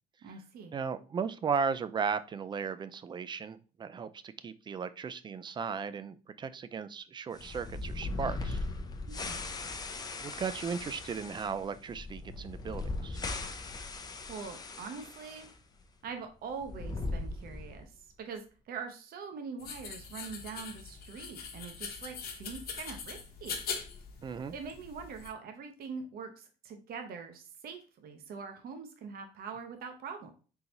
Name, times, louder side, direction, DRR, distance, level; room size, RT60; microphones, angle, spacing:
voice 1, 0.2-0.7 9.1-9.4 14.3-15.5 16.0-17.9 18.2-23.6 24.5-30.3, right 5 dB, 65° right, 5 dB, 0.8 m, -43 dB
voice 2, 0.7-8.6 10.2-13.2 24.2-24.5, right 6 dB, 25° right, 12 dB, 0.4 m, -36 dB
sound 1, 7.3-15.5 15.8-15.9 16.5-17.9, left 3 dB, 25° left, 0.5 m, -39 dB
sound 2, 19.6-25.3, left 5 dB, 65° left, 1.0 m, -42 dB
3.9 x 3.8 x 2.9 m, 0.36 s
cardioid pair, 110°, 17 cm